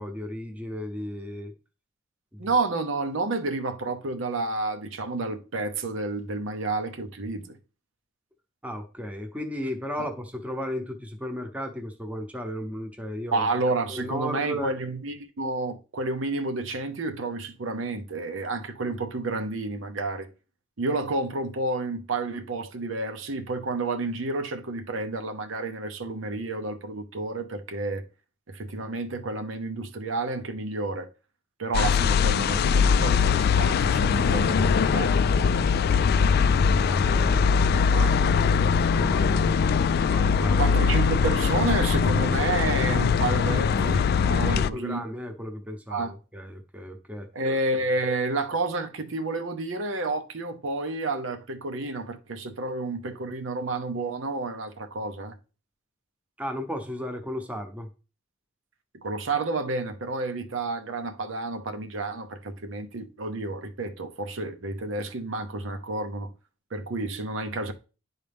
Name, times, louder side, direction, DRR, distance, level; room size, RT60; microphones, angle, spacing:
voice 1, 0.0-1.5 2.3-2.5 8.6-13.5 13.9-14.7 35.8-39.4 40.1-40.9 44.4-47.3 56.4-57.9, equal, 5° right, 0.8 m, -35 dB
voice 2, 2.4-7.6 10.0-10.1 13.3-20.3 20.8-28.0 28.5-31.1 31.6-35.2 40.6-45.0 45.9-46.1 47.3-55.4 58.9-66.3 66.7-67.7, right 3 dB, 75° right, 0.8 m, -30 dB
sound 1, 31.7-44.7, left 6 dB, 55° left, 0.3 m, -22 dB
10.5 x 4.0 x 3.5 m
head